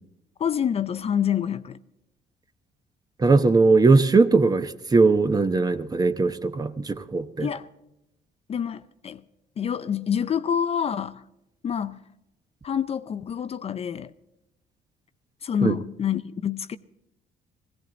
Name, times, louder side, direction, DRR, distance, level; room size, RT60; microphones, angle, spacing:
voice 1, 0.4-1.8 7.4-7.7 8.5-9.2 9.6-11.2 11.6-12.0 12.6-14.1 15.4-16.8, left 8 dB, 35° left, 0.5 m, -27 dB
voice 2, 3.2-7.5 15.6-15.7, right 3 dB, 20° right, 0.9 m, -20 dB
18.0 x 16.5 x 3.9 m
cardioid pair, 110°, 17 cm